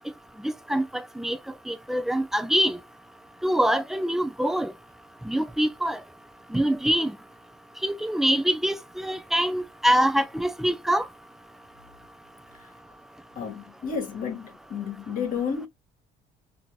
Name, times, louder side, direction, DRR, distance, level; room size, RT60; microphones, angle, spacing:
voice 1, 0.4-1.4 1.7-2.8 3.4-4.7 5.2-6.0 6.5-7.2 7.8-11.1, right 1 dB, ahead, 0.4 m, -24 dB
voice 2, 13.3-15.7, left 6 dB, 55° left, 1.2 m, -31 dB
4.4 x 2.7 x 2.2 m
cardioid pair, 110°, 17 cm